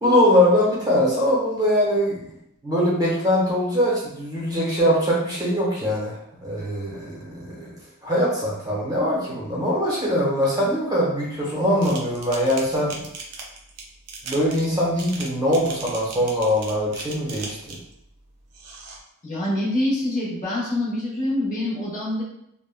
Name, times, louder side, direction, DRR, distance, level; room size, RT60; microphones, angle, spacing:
voice 1, 0.0-2.3 2.6-7.7 8.0-13.1 14.2-17.8, equal, 15° right, -5 dB, 0.8 m, -22 dB
sound 1, 11.8-17.9 18.5-19.0, right 4 dB, 80° right, 0.6 m, -38 dB
voice 2, 19.2-22.2, left 1 dB, 35° left, -7 dB, 0.8 m, -25 dB
3.3 x 2.1 x 2.2 m, 0.78 s
head